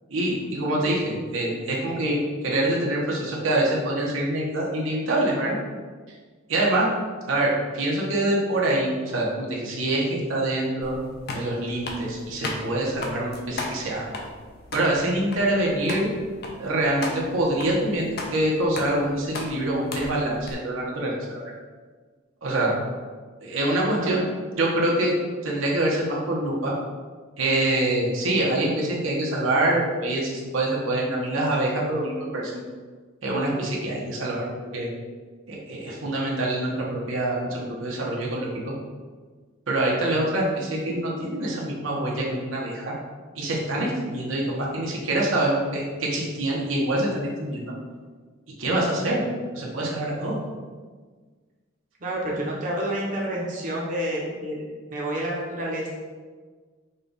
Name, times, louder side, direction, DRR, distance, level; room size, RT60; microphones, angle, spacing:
voice 1, 0.1-5.6 6.5-6.9 7.3-10.9 11.3-14.0 14.7-16.1 16.6-21.4 22.4-22.7 23.4-24.3 24.6-25.1 25.4-26.7 27.4-32.6 33.2-34.5 34.7-34.9 35.5-38.7 39.7-42.9 43.4-47.7 48.6-49.2 49.5-50.4, right 1 dB, 90° right, -3 dB, 1.0 m, -25 dB
sound 1, 10.8-20.5, left 2 dB, 55° left, 0.6 m, -36 dB
voice 2, 52.0-54.6 54.9-55.9, right 1 dB, 40° right, -4 dB, 0.7 m, -29 dB
5.3 x 2.3 x 3.9 m, 1.5 s
head